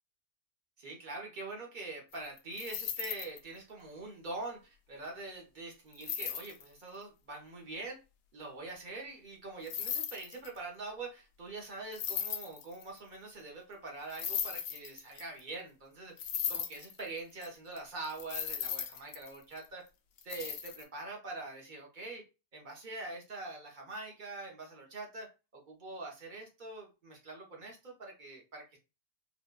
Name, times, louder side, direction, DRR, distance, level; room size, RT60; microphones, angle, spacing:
voice 1, 0.8-8.0 8.3-16.2 16.5-19.8 20.2-22.2 22.5-28.8, right 3 dB, 35° right, 0 dB, 0.9 m, -44 dB
sound 1, 2.1-3.4 5.9-6.6 9.6-10.6 11.9-13.0 14.1-15.4 16.2-17.5 17.8-17.9 18.0-19.7 20.2-20.8, left 9 dB, 70° left, 0.9 m, -37 dB
3.8 x 2.4 x 2.2 m, 0.29 s
omnidirectional pair, 1.7 m